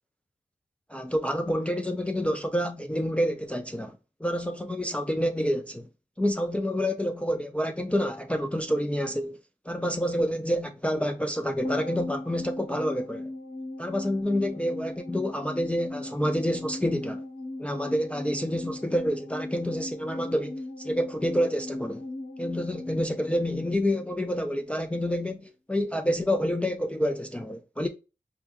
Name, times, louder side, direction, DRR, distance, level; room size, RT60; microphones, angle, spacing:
voice 1, 0.9-3.9 4.2-5.9 6.2-9.4 9.7-13.3 13.8-17.2 17.6-22.0 22.4-27.9, equal, 10° left, 0.3 m, -28 dB
sound 1, 11.6-24.2 24.4-24.5, left 2 dB, 50° left, 1.2 m, -38 dB
4.5 x 2.5 x 2.3 m
wide cardioid pair, 150°, 14 cm